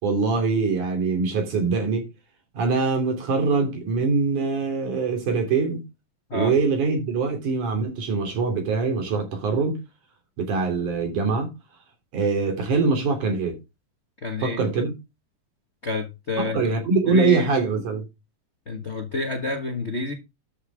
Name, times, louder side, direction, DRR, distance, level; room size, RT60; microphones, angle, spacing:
voice 1, 0.0-2.1 2.5-5.8 6.3-9.8 10.4-11.5 12.1-13.6 14.4-14.9 16.4-18.1, right 4 dB, 75° right, 4.6 m, -23 dB
voice 2, 14.2-14.6 15.8-16.8 17.1-17.5 18.7-20.1, left 2 dB, 45° left, 0.9 m, -28 dB
12.5 x 6.9 x 3.5 m
omnidirectional pair, 3.5 m